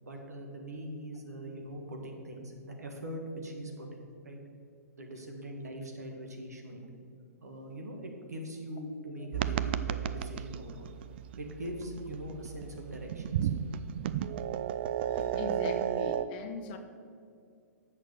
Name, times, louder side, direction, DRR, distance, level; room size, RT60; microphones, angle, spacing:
voice 1, 0.0-4.4 5.0-6.9 7.4-10.9 11.4-13.5, equal, 70° right, 2 dB, 1.8 m, -42 dB
sound 1, 9.3-16.3, right 10 dB, 40° right, 0.4 m, -34 dB
voice 2, 15.1-16.8, left 5 dB, 35° left, 7 dB, 0.9 m, -41 dB
7.7 x 6.5 x 7.8 m, 2.3 s
figure-of-eight pair, 115°, 9 cm